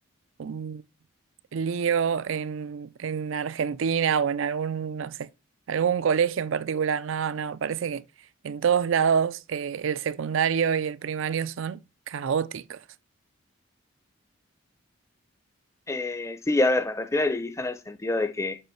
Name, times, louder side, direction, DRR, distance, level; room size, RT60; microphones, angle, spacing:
voice 1, 0.4-0.8 1.5-5.3 5.7-8.0 8.4-11.8 12.1-12.8, right 7 dB, 65° right, 0.4 m, -26 dB
voice 2, 15.9-18.6, left 2 dB, 15° left, 0.6 m, -26 dB
5.8 x 5.4 x 5.7 m
head